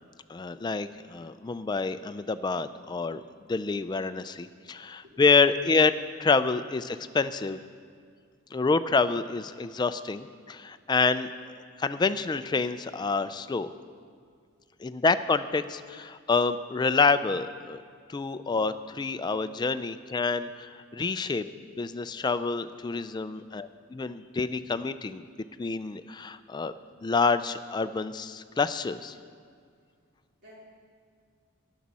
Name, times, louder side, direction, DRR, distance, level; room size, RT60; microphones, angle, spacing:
voice 1, 0.3-3.2 3.5-5.9 6.2-7.6 8.5-11.3 11.8-13.7 14.8-17.8 18.1-21.5 21.8-25.2 25.6-26.7 27.0-29.2, left 4 dB, 20° left, 12 dB, 0.3 m, -27 dB
voice 2, 4.7-5.2 30.4-30.6, equal, 50° right, -6 dB, 3.9 m, -54 dB
15.0 x 10.5 x 4.1 m, 2.1 s
head